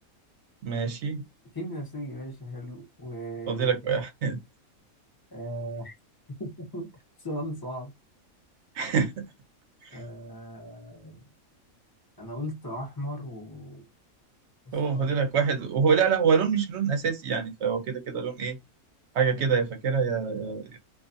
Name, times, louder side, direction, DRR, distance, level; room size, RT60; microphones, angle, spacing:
voice 1, 0.6-1.2 3.5-4.4 8.7-9.3 9.8-10.0 14.7-18.6 19.1-20.8, right 6 dB, 60° right, 0.8 m, -26 dB
voice 2, 1.5-3.7 5.3-5.9 6.4-6.9 7.2-7.9 9.9-11.3 12.2-13.8 14.7-15.2, equal, 25° left, 0.5 m, -37 dB
2.4 x 2.3 x 2.5 m
omnidirectional pair, 1.5 m